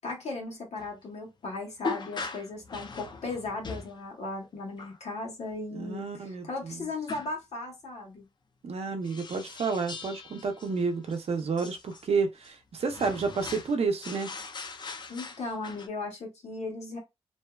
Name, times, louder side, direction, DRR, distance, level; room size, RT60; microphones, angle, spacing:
voice 1, 0.0-8.2 15.1-17.0, left 3 dB, 70° left, 1.1 m, -37 dB
sound 1, 0.8-0.9 1.8-4.0 4.8-5.0 7.1-7.3 9.0-12.0 12.4-12.5 12.8-13.8 14.0-15.9, left 4 dB, 40° left, 0.4 m, -40 dB
voice 2, 5.7-6.9 8.6-14.3, right 4 dB, 60° right, 0.6 m, -30 dB
2.6 x 2.1 x 2.2 m
wide cardioid pair, 125°, 12 cm